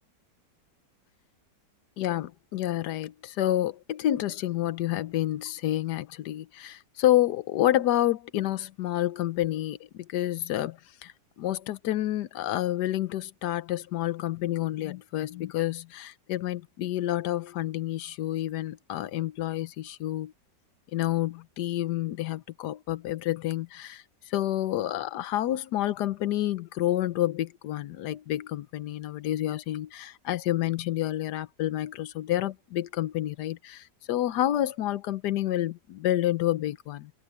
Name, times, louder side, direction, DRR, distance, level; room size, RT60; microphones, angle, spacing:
voice 1, 2.0-11.1 11.4-20.3 20.9-37.1, left 13 dB, 70° left, 1.3 m, -29 dB
omnidirectional pair, 1.9 m